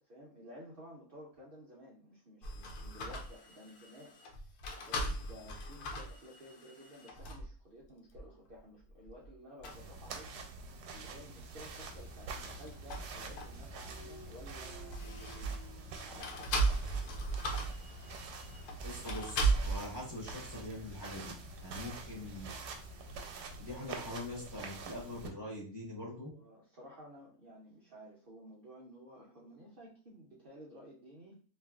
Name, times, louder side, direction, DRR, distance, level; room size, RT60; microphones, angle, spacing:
voice 1, 0.0-4.1 4.5-15.6 16.0-17.2 26.2-31.4, equal, 70° right, -4 dB, 0.5 m, -54 dB
sound 1, 2.4-7.5 8.1-8.2 8.9-9.3 9.6-9.8 12.4-13.8 14.2-15.7 16.2-19.8, right 2 dB, 70° left, 1.1 m, -37 dB
sound 2, 9.7-25.3, right 4 dB, 90° right, 1.2 m, -47 dB
sound 3, 11.6-23.2, left 2 dB, 90° left, 1.6 m, -53 dB
voice 2, 18.8-21.3 21.6-22.5 23.6-26.3, left 1 dB, 20° left, -6 dB, 0.7 m, -43 dB
3.0 x 2.4 x 2.3 m, 0.42 s
omnidirectional pair, 1.7 m